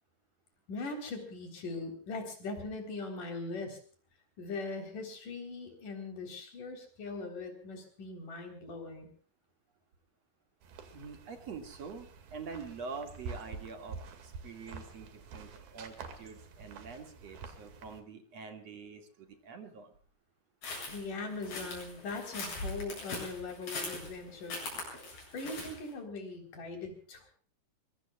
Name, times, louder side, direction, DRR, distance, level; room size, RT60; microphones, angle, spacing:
voice 1, 0.7-3.8 4.4-9.1 20.9-25.0 25.3-27.3, left 3 dB, 60° left, 4 dB, 5.4 m, -40 dB
sound 1, 10.6-18.0, right 5 dB, 75° right, 4.0 m, -48 dB
voice 2, 10.9-19.9, right 5 dB, 50° right, 5 dB, 3.0 m, -45 dB
sound 2, 20.6-25.9, left 2 dB, 85° left, 9.8 m, -41 dB
24.0 x 22.5 x 2.4 m, 0.44 s
omnidirectional pair, 4.3 m